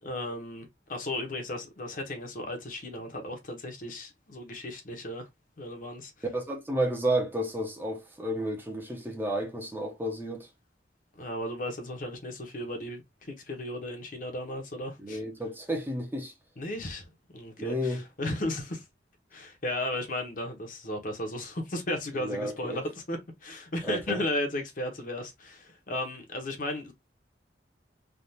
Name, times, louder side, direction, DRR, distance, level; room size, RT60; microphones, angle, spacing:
voice 1, 0.0-5.3 5.6-6.1 11.2-15.2 16.6-17.1 17.3-18.8 19.3-26.9, left 1 dB, 50° left, 0.9 m, -35 dB
voice 2, 6.3-10.5 15.0-16.3 17.6-18.0 22.2-22.8 23.8-24.2, right 1 dB, 10° right, 0.8 m, -31 dB
3.5 x 2.4 x 2.7 m
head